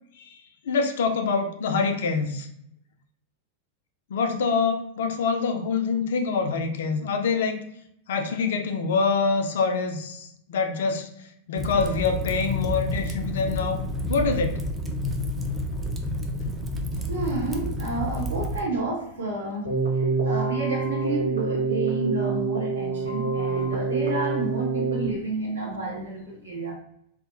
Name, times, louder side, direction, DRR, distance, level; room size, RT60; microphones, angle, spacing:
voice 1, 0.7-2.5 4.1-7.6 8.1-11.1 11.5-13.8 14.1-14.6, left 4 dB, 60° left, 5 dB, 0.3 m, -25 dB
Fire, 11.6-18.6, left 1 dB, 15° right, 0.4 m, -29 dB
voice 2, 17.1-26.7, right 2 dB, 75° right, -4 dB, 0.9 m, -30 dB
Keyboard (musical), 19.6-25.1, right 4 dB, 85° left, 0.7 m, -26 dB
2.8 x 2.0 x 2.5 m, 0.74 s
figure-of-eight pair, 90°, 0 cm